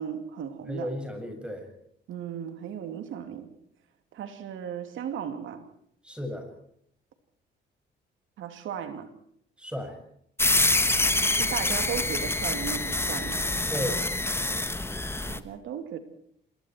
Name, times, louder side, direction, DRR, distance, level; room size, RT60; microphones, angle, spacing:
voice 1, 0.0-0.9 2.1-3.5 4.1-5.6 8.4-9.1 11.3-13.4 15.3-16.0, right 8 dB, 80° right, 8 dB, 2.8 m, -36 dB
voice 2, 0.7-1.7 6.0-6.5 9.6-10.0 13.7-14.0, equal, 5° right, 5 dB, 6.8 m, -34 dB
sound 1, 10.4-15.4, left 2 dB, 10° left, 1.4 m, -26 dB
27.0 x 21.5 x 4.6 m, 0.69 s
cardioid pair, 90°, 20 cm